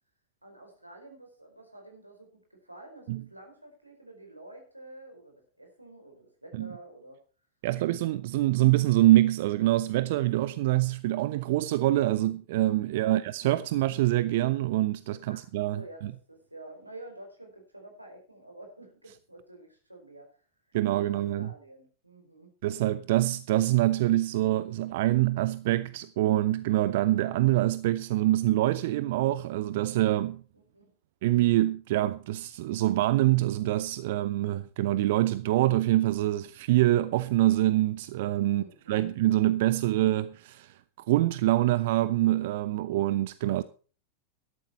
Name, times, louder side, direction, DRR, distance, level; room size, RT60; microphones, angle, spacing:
voice 1, 0.4-7.2 12.9-13.2 15.3-15.5 15.7-20.4 20.8-22.5 30.7-30.9 38.5-39.1, right 1 dB, 85° right, 4.6 m, -49 dB
voice 2, 7.6-16.1 20.7-21.5 22.6-30.4 31.2-40.7 41.1-43.6, right 15 dB, 50° right, 0.5 m, -25 dB
13.0 x 11.5 x 4.3 m
figure-of-eight pair, 90°, 0 cm